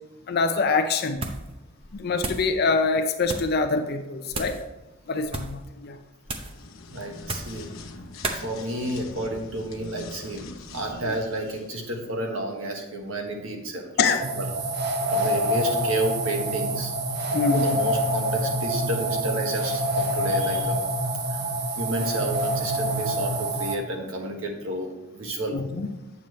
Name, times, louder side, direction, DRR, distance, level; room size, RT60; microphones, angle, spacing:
voice 1, 0.3-1.2 2.0-4.6 5.1-6.0 14.0-14.2 17.3-17.7 25.5-25.9, left 4 dB, 50° left, 7 dB, 0.5 m, -24 dB
sound 1, 1.1-1.5 1.8-2.5 3.2-3.6 4.3-4.6 5.2-5.6 6.2-6.6 7.2-7.6 8.2-8.4, right 2 dB, 25° right, 0.7 m, -33 dB
sound 2, 6.4-12.1, left 2 dB, 75° left, 0.9 m, -43 dB
voice 2, 6.9-7.7 8.4-10.4 10.7-14.4 15.1-16.9 17.5-20.8 21.3-21.4 21.8-25.6, right 1 dB, 80° right, 2 dB, 1.4 m, -31 dB
sound 3, 14.2-23.7, right 1 dB, 55° right, 0.8 m, -26 dB
8.6 x 7.0 x 3.2 m, 1.0 s
head